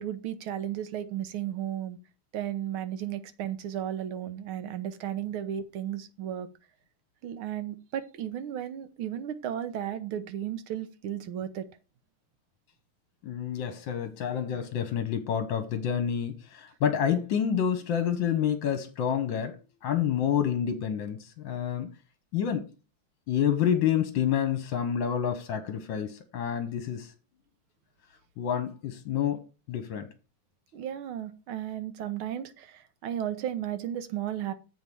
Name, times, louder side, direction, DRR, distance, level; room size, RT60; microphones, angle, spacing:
voice 1, 0.0-2.0 2.3-6.5 7.2-11.7 30.7-34.5, right 10 dB, 75° right, 1.6 m, -34 dB
voice 2, 13.2-19.6 19.8-21.9 22.3-22.7 23.3-27.1 28.4-29.4 29.7-30.1, left 9 dB, 70° left, 1.5 m, -28 dB
7.4 x 4.7 x 6.8 m
omnidirectional pair, 2.3 m